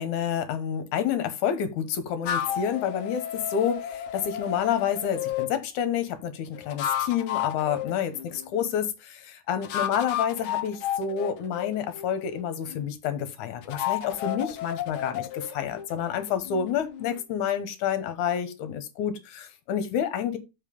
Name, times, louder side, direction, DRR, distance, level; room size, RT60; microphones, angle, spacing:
voice 1, 0.0-20.4, left 8 dB, 70° left, 2.5 m, -29 dB
sound 1, 2.3-5.5 6.6-8.7 9.6-12.9 13.6-17.2, left 10 dB, 90° left, 1.1 m, -32 dB
7.3 x 5.4 x 5.2 m
omnidirectional pair, 3.7 m